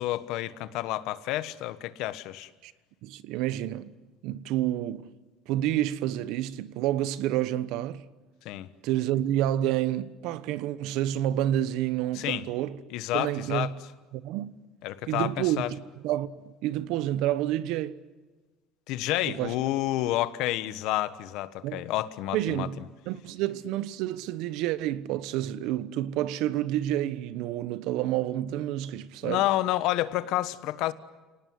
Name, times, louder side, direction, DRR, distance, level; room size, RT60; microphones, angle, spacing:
voice 1, 0.0-2.5 8.4-8.7 12.1-12.4 12.9-13.7 14.8-15.7 18.9-22.7 29.2-30.9, left 15 dB, 70° left, 1.3 m, -29 dB
voice 2, 3.0-3.9 4.2-5.0 5.5-8.0 8.8-12.8 13.1-13.7 14.1-14.5 15.1-15.6 16.0-18.0 19.3-19.5 21.6-21.8 22.3-29.4, right 13 dB, 70° right, 1.2 m, -29 dB
29.5 x 19.0 x 9.6 m
cardioid pair, 140°, 0 cm